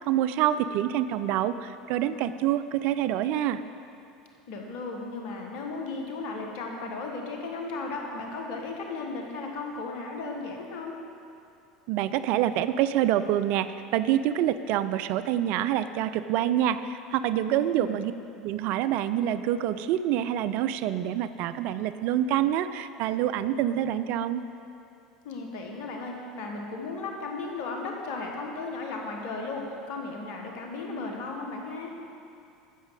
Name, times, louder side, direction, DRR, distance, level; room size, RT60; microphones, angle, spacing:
voice 1, 0.0-3.6 11.9-18.1 18.4-24.4, right 11 dB, 55° right, 13 dB, 0.4 m, -26 dB
voice 2, 4.5-11.0 17.5-18.0 25.2-31.9, left 3 dB, 60° left, 1 dB, 1.5 m, -35 dB
10.0 x 7.4 x 4.9 m, 2.6 s
hypercardioid pair, 80°, 3 cm